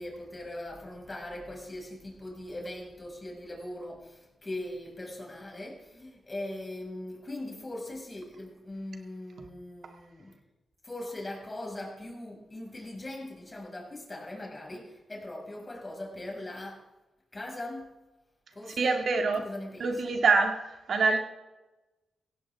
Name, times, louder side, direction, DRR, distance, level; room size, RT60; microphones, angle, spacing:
voice 1, 0.0-10.4 10.8-16.9 17.3-18.1 18.5-19.0 19.3-20.2, left 1 dB, 35° left, -1 dB, 6.3 m, -40 dB
voice 2, 18.8-19.5 19.8-20.6 20.9-21.2, right 4 dB, 70° right, 4 dB, 2.2 m, -24 dB
16.5 x 16.5 x 3.7 m, 1.1 s
supercardioid pair, 45°, 0 cm